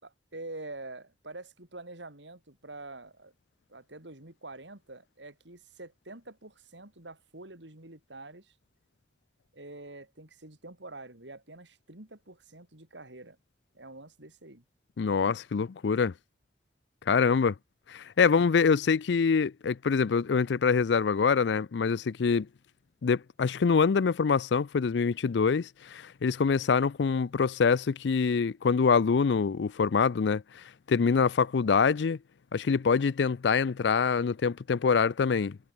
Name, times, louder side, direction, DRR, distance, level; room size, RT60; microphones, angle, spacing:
voice 1, 0.0-3.3 3.7-8.5 9.5-13.4 13.7-14.6, right 2 dB, 85° right, 4.5 m, -46 dB
voice 2, 15.0-16.1 17.1-17.5 17.9-22.5 23.0-32.2 32.5-35.6, left 5 dB, 80° left, 0.4 m, -25 dB
head